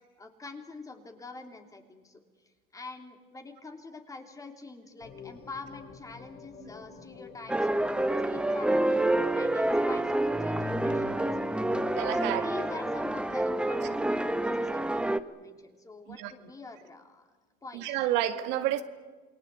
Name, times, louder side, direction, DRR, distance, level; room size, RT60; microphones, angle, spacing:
voice 1, 0.2-9.0 9.3-11.5 12.1-17.3 17.6-18.1, left 3 dB, 20° left, 5 dB, 3.2 m, -45 dB
sound 1, 5.0-12.0, left 6 dB, 55° left, 3.6 m, -50 dB
sound 2, 7.5-15.2, right 1 dB, 5° right, 1.0 m, -28 dB
voice 2, 11.9-12.6 16.1-16.3 17.7-18.8, right 12 dB, 80° right, 8 dB, 2.0 m, -30 dB
28.0 x 20.5 x 8.4 m, 1.3 s
cardioid pair, 125°, 18 cm